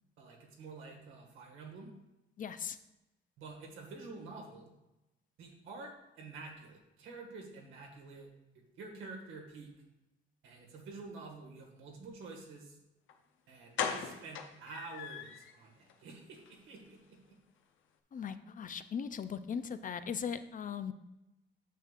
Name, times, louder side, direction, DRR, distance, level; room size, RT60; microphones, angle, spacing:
voice 1, 0.2-1.9 3.4-4.7 5.4-8.3 8.5-9.7 10.4-12.8 13.5-17.4, right 3 dB, 90° right, 1 dB, 1.8 m, -49 dB
voice 2, 2.4-2.8 18.1-20.9, left 7 dB, 40° left, 11 dB, 0.5 m, -38 dB
sound 1, 13.1-13.2 13.7-15.5 15.9-16.0 16.4-16.5 16.8-16.9, left 7 dB, 80° left, 0.8 m, -38 dB
9.0 x 6.5 x 2.5 m, 0.94 s
cardioid pair, 90°, 20 cm